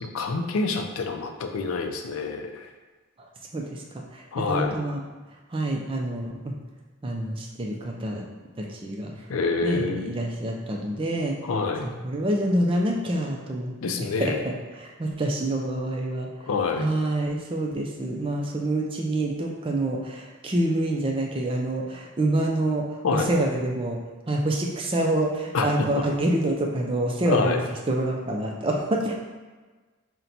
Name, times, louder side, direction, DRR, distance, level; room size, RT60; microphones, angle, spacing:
voice 1, 0.0-2.6 4.3-4.8 9.3-10.2 11.4-11.9 13.8-14.4 16.5-16.9 23.0-23.3 25.5-25.7 27.3-27.6, left 4 dB, 80° left, 5 dB, 0.4 m, -27 dB
voice 2, 3.5-5.0 5.5-6.5 7.0-8.2 8.6-9.1 9.6-11.4 11.8-13.7 14.0-16.3 16.7-22.9 23.1-24.0 24.3-27.6 27.9-29.1, right 1 dB, 25° right, 0 dB, 0.4 m, -27 dB
4.2 x 2.2 x 4.0 m, 1.3 s
head